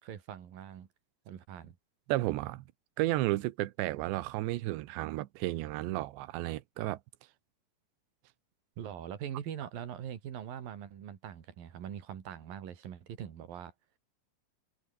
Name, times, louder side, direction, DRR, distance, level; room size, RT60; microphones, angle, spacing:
voice 1, 0.0-0.9 1.3-1.8 8.8-13.7, right 9 dB, 60° right, 3.7 m, -42 dB
voice 2, 2.1-2.6 3.0-7.0, right 17 dB, 85° right, 3.3 m, -32 dB
omnidirectional pair, 5.0 m